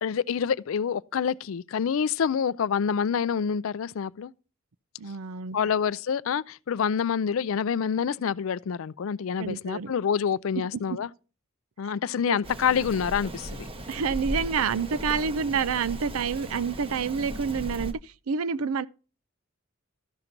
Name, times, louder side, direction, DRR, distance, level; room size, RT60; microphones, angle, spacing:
voice 1, 0.0-4.3 5.5-11.1 11.8-13.7, left 7 dB, 65° left, 0.4 m, -27 dB
voice 2, 5.0-5.6 9.4-9.9 10.7-11.0 12.3-12.4 13.9-18.9, right 6 dB, 80° right, 0.5 m, -28 dB
Rain, 12.4-17.9, right 1 dB, 25° right, 0.8 m, -37 dB
13.0 x 5.9 x 3.8 m
head